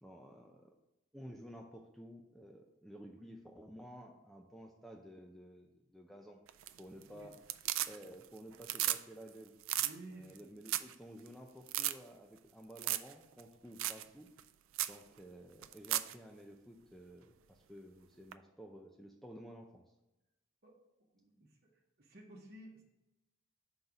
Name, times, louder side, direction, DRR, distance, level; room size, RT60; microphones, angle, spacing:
voice 1, 0.0-0.7 1.1-6.4 6.8-7.4 7.9-9.5 10.1-14.3 14.9-19.9, equal, ahead, 1 dB, 0.4 m, -53 dB
sound 1, 6.5-7.0 7.3-8.3 8.5-9.0 9.3-9.4 9.6-9.9 10.4-10.5 10.7-10.9 11.3-11.4 11.7-11.9 12.8-13.1 13.4-13.5 13.8-14.0 14.4-14.5 14.7-15.0 15.6-16.1 18.3-18.4, right 14 dB, 85° right, 0.3 m, -35 dB
voice 2, 9.8-10.4 20.6-20.8 21.1-21.5 22.0-22.8, right 1 dB, 50° right, -2 dB, 1.0 m, -53 dB
5.5 x 4.0 x 4.8 m, 0.95 s
head